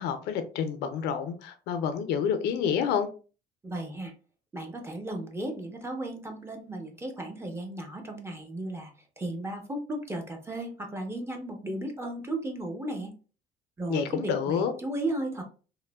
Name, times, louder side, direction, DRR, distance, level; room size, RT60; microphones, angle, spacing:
voice 1, 0.0-3.1 13.9-14.7, left 7 dB, 85° left, 0.4 m, -28 dB
voice 2, 3.6-4.1 4.5-8.9 9.2-13.1 13.8-15.4, right 1 dB, 15° right, 0.6 m, -35 dB
2.9 x 2.0 x 2.2 m
cardioid pair, 110°, 17 cm